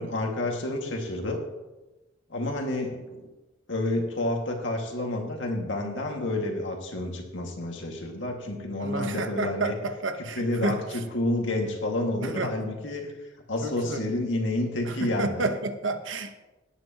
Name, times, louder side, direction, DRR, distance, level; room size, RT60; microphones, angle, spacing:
voice 1, 0.0-1.4 2.3-3.3 3.7-9.7 10.2-13.1 13.5-15.5, left 1 dB, 70° left, 2 dB, 2.0 m, -29 dB
voice 2, 8.8-10.8 12.2-12.5 13.6-14.0 14.9-16.4, right 3 dB, 85° right, 8 dB, 1.1 m, -30 dB
18.0 x 9.5 x 3.0 m, 1.1 s
head